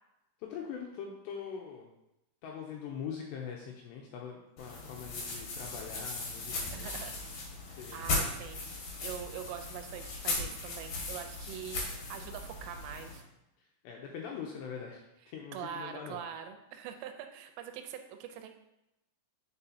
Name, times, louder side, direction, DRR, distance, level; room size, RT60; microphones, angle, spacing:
voice 1, 0.4-1.9 2.4-6.9 7.7-8.0 13.6-16.2, left 7 dB, 90° left, -1 dB, 2.5 m, -43 dB
sound 1, 4.6-13.2, left 2 dB, 70° left, 1.8 m, -38 dB
voice 2, 6.7-7.1 7.7-8.7 9.0-13.2 15.5-18.5, right 9 dB, 90° right, 6 dB, 3.2 m, -43 dB
9.7 x 4.5 x 2.7 m, 0.89 s
omnidirectional pair, 5.6 m